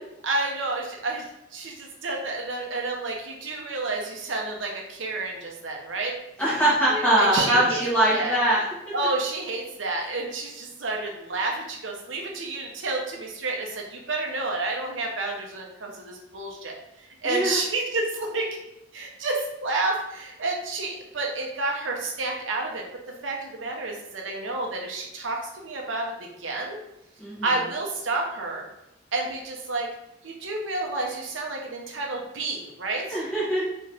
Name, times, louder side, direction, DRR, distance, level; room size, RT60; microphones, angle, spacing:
voice 1, 0.2-6.2 6.9-8.4 8.9-18.6 18.9-22.8 23.2-26.8 27.4-28.6 29.1-29.9 30.2-33.2, right 2 dB, 80° right, 0 dB, 0.8 m, -30 dB
voice 2, 6.4-8.6 17.2-17.6 27.2-27.5 33.1-33.7, right 1 dB, 10° left, -8 dB, 1.7 m, -22 dB
Drum, 7.4-9.3, right 3 dB, 60° right, 0.4 m, -38 dB
4.5 x 3.1 x 3.5 m, 0.87 s
head